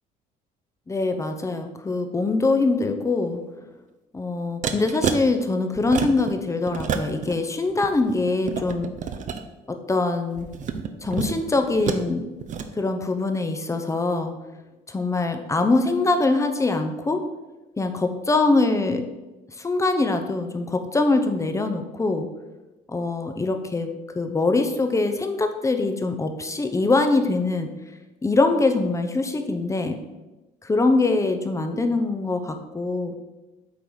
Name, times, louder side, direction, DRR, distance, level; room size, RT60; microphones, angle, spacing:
voice 1, 0.9-3.4 4.1-8.9 9.7-10.5 11.0-12.2 12.8-14.4 14.9-17.2 17.8-19.0 19.6-22.3 22.9-27.7 28.2-30.0 30.6-33.1, left 3 dB, 20° left, 6 dB, 0.7 m, -23 dB
sound 1, 4.6-5.2 5.7-6.3 6.7-7.3 7.7-9.4 10.4-12.1 12.4-12.7, right 7 dB, 50° right, 0.7 m, -29 dB
8.3 x 3.8 x 4.8 m, 1.1 s
cardioid pair, 110°, 17 cm